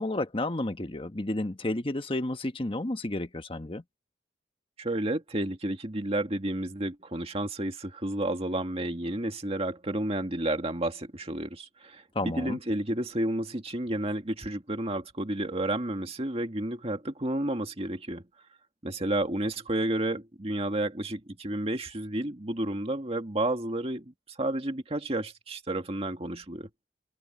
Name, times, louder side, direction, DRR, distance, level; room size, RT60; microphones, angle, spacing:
voice 1, 0.0-3.8 12.1-12.6, left 1 dB, 30° left, 1.2 m, -31 dB
voice 2, 4.8-18.2 18.8-24.1 24.4-26.7, right 1 dB, 35° right, 2.1 m, -31 dB
head